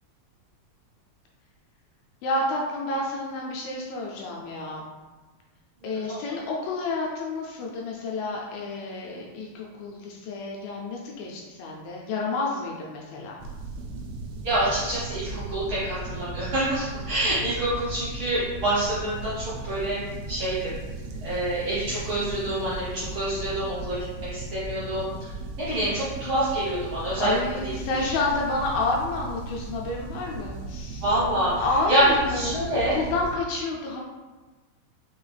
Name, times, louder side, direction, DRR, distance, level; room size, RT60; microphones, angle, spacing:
voice 1, 2.2-4.8 5.8-13.4 27.2-31.0 31.6-34.0, left 2 dB, 80° left, -1 dB, 2.1 m, -29 dB
voice 2, 5.8-6.2 13.9-14.0 14.4-20.0 20.3-20.8 21.2-25.1 25.6-27.4 31.0-32.9, right 1 dB, 70° right, -10 dB, 1.4 m, -27 dB
sound 1, 13.4-33.4, right 3 dB, 85° right, 2.6 m, -37 dB
5.9 x 2.4 x 3.2 m, 1.3 s
omnidirectional pair, 4.5 m